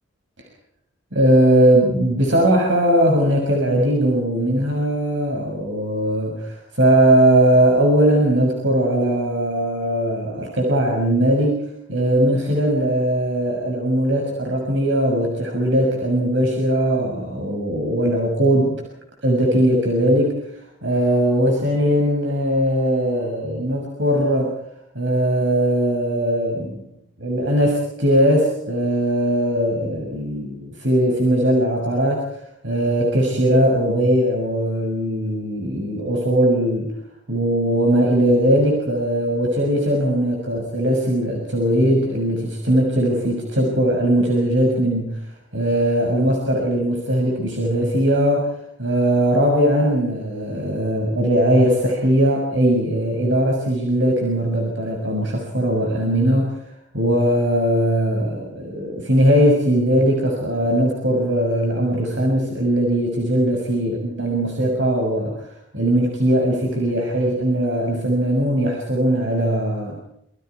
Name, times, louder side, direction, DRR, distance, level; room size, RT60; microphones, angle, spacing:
voice 1, 1.1-11.6 11.9-18.8 19.2-20.3 20.8-24.5 24.9-26.8 27.2-32.2 32.6-36.9 37.3-45.2 45.5-48.5 48.8-56.5 56.9-65.5 65.7-70.0, right 1 dB, 70° right, 0 dB, 6.4 m, -19 dB
27.5 x 24.0 x 4.7 m, 0.76 s
head